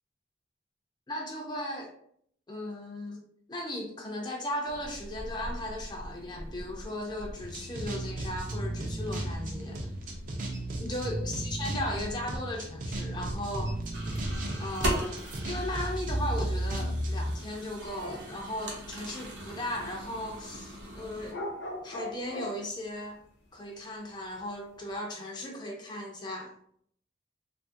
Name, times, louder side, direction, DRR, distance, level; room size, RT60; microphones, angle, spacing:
voice 1, 1.1-1.9 2.5-3.2 3.5-9.8 10.8-13.8 14.6-21.4 21.8-23.2 23.5-26.5, left 1 dB, 25° left, 0 dB, 0.5 m, -37 dB
sound 1, 4.7-21.3, right 1 dB, 80° right, 0.8 m, -41 dB
sound 2, 7.4-17.3, right 1 dB, 45° right, 0.5 m, -34 dB
sound 3, 17.9-18.4 18.6-18.7 21.1-22.6, left 1 dB, 85° left, 0.6 m, -38 dB
3.0 x 2.5 x 2.5 m, 0.64 s
head